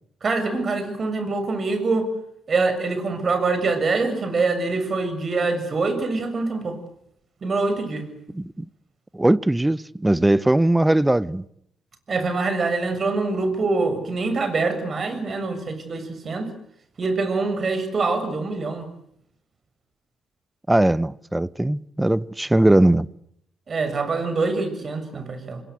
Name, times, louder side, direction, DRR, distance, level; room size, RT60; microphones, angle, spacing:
voice 1, 0.2-2.1 2.5-6.8 7.4-8.1 12.1-16.5 17.0-18.9 23.7-25.6, right 3 dB, 45° right, 7.0 m, -24 dB
voice 2, 8.3-8.6 9.1-11.4 20.7-23.1, right 1 dB, 10° right, 0.9 m, -19 dB
28.0 x 21.5 x 8.1 m
hypercardioid pair, 55°, 0 cm